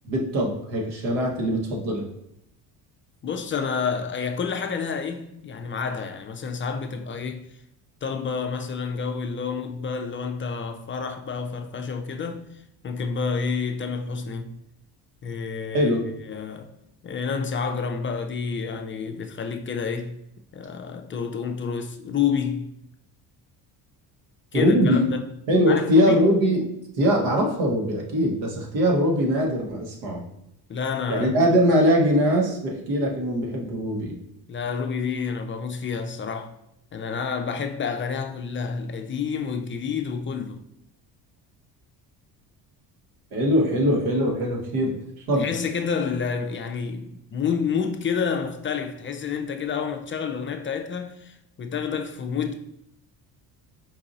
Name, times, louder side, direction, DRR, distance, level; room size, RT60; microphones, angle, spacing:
voice 1, 0.0-2.1 15.7-16.1 24.5-25.0 25.5-26.7 27.0-30.2 31.1-34.2 43.3-45.0 45.3-45.5, equal, 90° right, 1.3 m, -22 dB
voice 2, 3.2-7.5 8.0-14.5 15.2-15.9 16.3-16.7 17.0-20.2 20.5-22.7 24.5-25.3 25.7-26.2 30.7-31.3 34.5-36.5 36.9-40.6 45.4-52.5, left 6 dB, 30° left, 0.4 m, -29 dB
4.7 x 2.6 x 4.0 m
cardioid pair, 95°, 41 cm